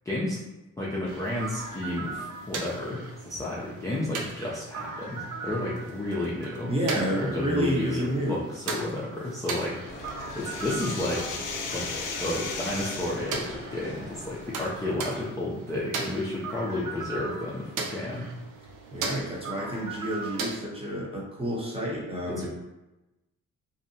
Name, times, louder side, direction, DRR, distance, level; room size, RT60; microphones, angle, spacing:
voice 1, 0.1-0.4 0.8-11.4 11.7-11.9 12.2-18.3 22.3-22.5, left 1 dB, 10° left, -7 dB, 0.4 m, -32 dB
sound 1, 1.1-20.6, right 4 dB, 85° right, 0.5 m, -38 dB
voice 2, 6.7-8.4 18.9-22.5, right 1 dB, 20° right, -3 dB, 0.8 m, -29 dB
sound 2, 9.5-13.3, left 5 dB, 90° left, 0.5 m, -36 dB
sound 3, 9.9-15.2, left 1 dB, 35° left, 0.8 m, -41 dB
2.7 x 2.0 x 2.7 m, 1.0 s
cardioid pair, 90°, 30 cm